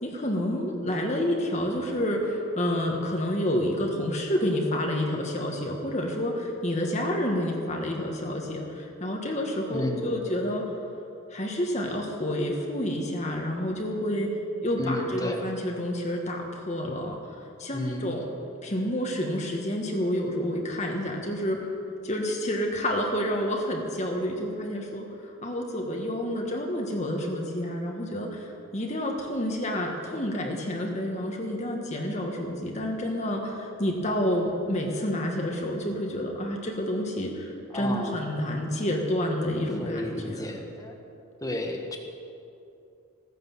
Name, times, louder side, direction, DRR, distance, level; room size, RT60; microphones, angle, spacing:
voice 1, 0.0-10.6 11.3-14.3 14.6-17.3 17.6-18.3 18.6-21.7 22.0-40.6, equal, 35° left, 1 dB, 1.5 m, -29 dB
voice 2, 9.7-10.2 14.2-14.3 14.8-15.5 17.7-18.2 37.7-38.2 39.8-41.0 41.4-42.0, left 1 dB, 15° left, 2 dB, 1.3 m, -32 dB
15.5 x 9.7 x 7.3 m, 2.7 s
head